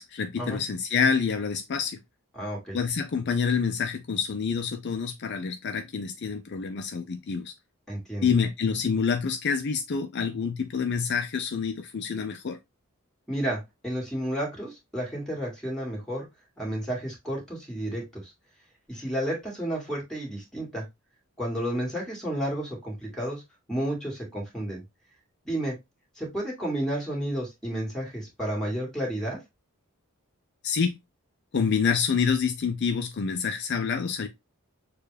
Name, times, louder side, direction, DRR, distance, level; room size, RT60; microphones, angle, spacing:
voice 1, 0.0-2.0 2.7-7.5 8.2-12.6 30.6-31.0 31.5-34.3, left 6 dB, 50° left, 0.4 m, -27 dB
voice 2, 2.4-2.8 7.9-8.3 13.3-16.3 16.6-18.3 18.9-20.8 21.4-23.4 23.7-24.8 25.4-25.8 26.2-29.4, right 1 dB, 5° left, 2.0 m, -31 dB
6.7 x 2.4 x 3.2 m
head